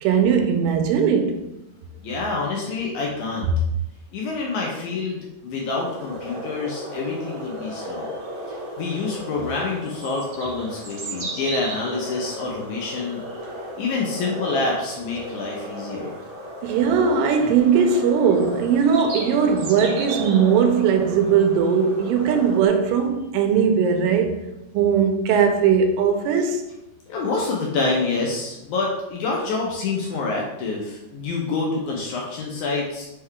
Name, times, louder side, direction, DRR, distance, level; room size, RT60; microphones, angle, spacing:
voice 1, 0.0-1.4 16.6-24.5 24.7-26.6, right 6 dB, 85° right, 2.2 m, -19 dB
voice 2, 2.0-3.5 4.1-8.1 8.5-13.2 13.8-16.2 27.1-33.1, left 3 dB, 80° left, 1.9 m, -27 dB
sound 1, 5.7-22.7, right 1 dB, 70° right, 2.0 m, -34 dB
5.4 x 2.3 x 3.6 m
omnidirectional pair, 3.9 m